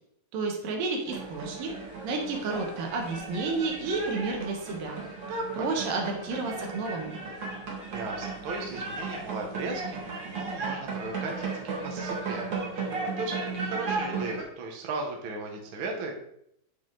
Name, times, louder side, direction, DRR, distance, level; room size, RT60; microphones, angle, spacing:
voice 1, 0.3-1.7 2.0-5.0 5.3-7.2, right 3 dB, 70° right, 2 dB, 2.8 m, -31 dB
sound 1, 1.1-14.4, right 4 dB, 45° right, 1.5 m, -35 dB
voice 2, 7.9-16.2, right 3 dB, 85° right, 2 dB, 1.1 m, -37 dB
9.3 x 4.3 x 3.8 m, 0.75 s
omnidirectional pair, 4.3 m